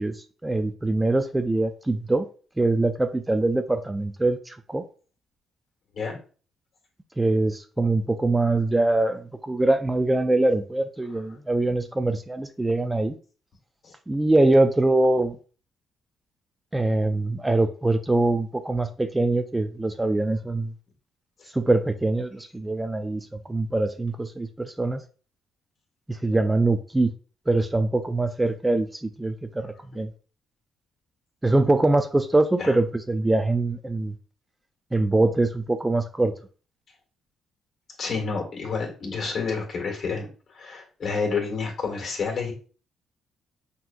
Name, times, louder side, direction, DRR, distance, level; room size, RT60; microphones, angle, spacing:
voice 1, 0.0-2.3 2.6-4.8 7.2-13.2 14.1-15.4 16.7-20.7 21.5-25.0 26.1-27.1 27.5-30.1 31.4-34.1 34.9-36.3, right 2 dB, 15° right, 0.3 m, -23 dB
voice 2, 38.0-40.3 40.5-42.5, left 5 dB, 50° left, 1.9 m, -29 dB
5.8 x 2.8 x 2.5 m
cardioid pair, 90°, 0 cm